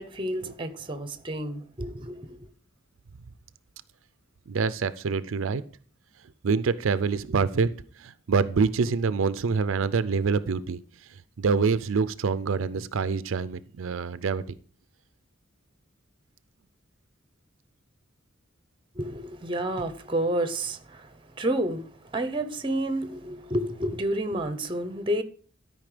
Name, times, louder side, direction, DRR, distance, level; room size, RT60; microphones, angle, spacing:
voice 1, 0.0-2.5 18.9-25.2, right 1 dB, 25° right, 0.9 m, -30 dB
voice 2, 4.5-5.6 6.4-14.4, right 5 dB, 80° right, 0.5 m, -26 dB
12.5 x 5.4 x 5.0 m
head